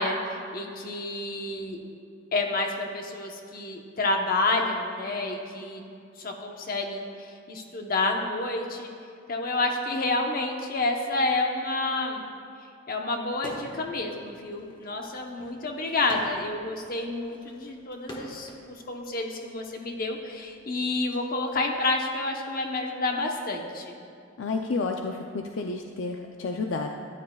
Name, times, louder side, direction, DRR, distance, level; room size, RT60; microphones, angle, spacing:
voice 1, 0.0-1.8 2.3-5.8 6.2-8.9 9.3-12.2 12.9-23.9, left 2 dB, 50° left, 2 dB, 0.9 m, -29 dB
sound 1, 13.3-13.9 14.3-18.7 19.5-21.2, left 1 dB, 25° left, 1.2 m, -43 dB
voice 2, 24.4-26.9, left 3 dB, 75° left, 3 dB, 0.5 m, -30 dB
13.5 x 11.0 x 2.3 m, 2.4 s
head